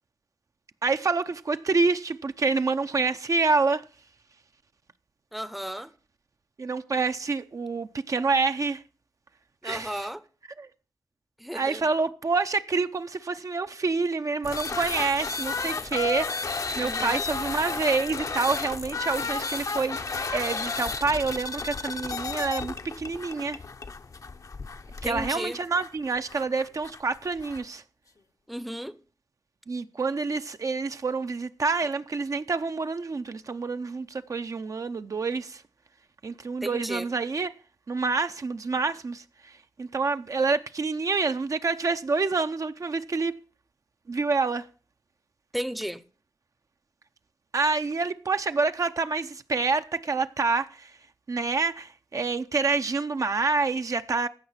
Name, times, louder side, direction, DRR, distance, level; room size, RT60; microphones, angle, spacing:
voice 1, 0.8-3.8 6.6-8.8 9.6-10.1 10.6-10.7 11.5-20.0 20.3-23.6 25.0-27.8 29.7-35.6 36.2-37.5 37.9-39.2 39.8-43.3 44.1-44.6 47.5-50.9 51.3-54.3, right 4 dB, 50° right, 0.6 m, -27 dB
voice 2, 5.3-5.9 9.6-10.2 11.4-11.9 16.8-17.2 25.0-25.6 28.5-29.0 36.6-37.1 45.5-46.0, equal, ahead, 0.7 m, -34 dB
sound 1, 14.4-27.6, left 4 dB, 50° left, 0.8 m, -33 dB
15.5 x 5.7 x 5.7 m
wide cardioid pair, 80°, 7 cm